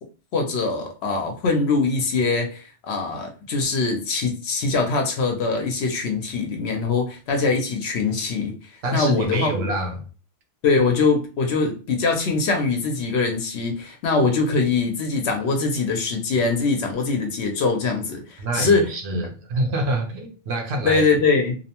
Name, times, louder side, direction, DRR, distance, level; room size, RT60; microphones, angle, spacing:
voice 1, 0.3-8.5 8.9-9.7 10.6-19.2 20.8-21.6, left 4 dB, 65° left, 0.8 m, -22 dB
voice 2, 8.8-10.0 18.4-21.0, right 1 dB, 65° right, 0.8 m, -26 dB
2.6 x 2.1 x 2.8 m
omnidirectional pair, 1.3 m